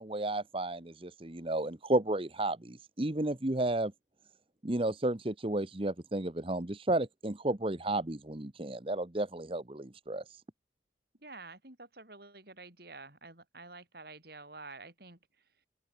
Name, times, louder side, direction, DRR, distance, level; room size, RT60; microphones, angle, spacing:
voice 1, 0.0-3.9 4.6-10.4, right 2 dB, 30° right, 1.2 m, -32 dB
voice 2, 11.2-15.2, right 3 dB, 55° right, 6.6 m, -49 dB
open air
head